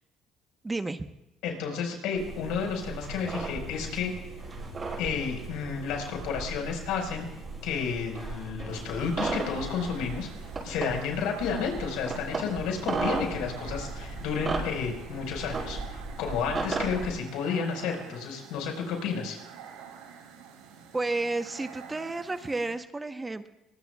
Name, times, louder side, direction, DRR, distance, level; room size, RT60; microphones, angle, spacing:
voice 1, 0.6-1.0 20.9-23.5, right 2 dB, 20° right, 9 dB, 1.0 m, -31 dB
voice 2, 1.4-4.1 5.0-7.2 7.6-10.3 10.6-19.4, left 6 dB, 75° left, 2 dB, 4.9 m, -31 dB
sound 1, 2.2-17.1, right 3 dB, 35° right, 7.9 m, -36 dB
sound 2, 8.7-22.7, right 7 dB, 85° right, 2.8 m, -48 dB
23.5 x 20.5 x 2.4 m, 0.94 s
supercardioid pair, 80°, 0 cm